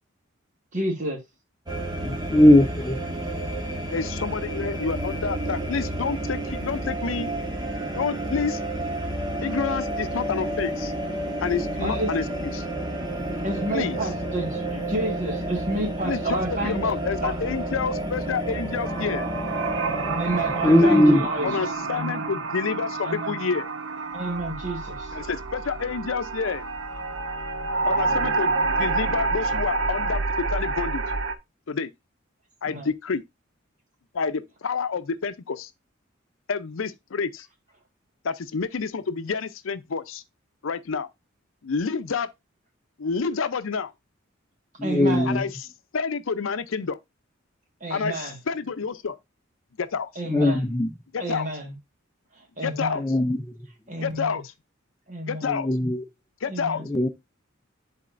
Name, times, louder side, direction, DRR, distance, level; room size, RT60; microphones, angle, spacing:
voice 1, 0.7-1.2 11.8-12.3 13.4-17.0 17.2-17.4 20.2-21.6 21.9-22.3 23.0-23.4 24.1-25.1 32.6-32.9 44.8-45.4 47.8-48.4 50.1-50.7 51.2-51.8 52.3-53.1 53.9-54.4 55.1-55.5 56.5-56.9, right 1 dB, 40° right, 1.7 m, -30 dB
sound 1, 1.7-21.1, right 1 dB, 20° right, 1.2 m, -30 dB
voice 2, 2.0-3.0 20.6-21.2 44.8-45.4 50.3-50.9 53.0-53.4 55.4-56.0 56.9-57.1, left 1 dB, 15° left, 0.5 m, -19 dB
voice 3, 3.9-7.3 7.9-8.6 9.4-10.9 11.4-12.2 12.5-12.6 13.7-14.0 16.0-19.3 20.8-21.0 21.4-23.7 25.1-26.7 27.8-31.0 31.7-31.9 32.6-33.2 34.1-35.7 36.5-37.5 38.2-40.2 40.6-41.1 41.6-42.3 43.0-43.9 45.3-45.5 45.9-47.0 47.9-48.1 48.5-49.2 49.8-50.1 51.1-51.5 52.6-53.0 54.0-54.4 55.3-55.7 56.4-56.8, left 5 dB, 80° left, 0.6 m, -28 dB
sound 2, 18.8-31.3, right 3 dB, 70° right, 0.7 m, -28 dB
10.5 x 4.2 x 2.5 m
head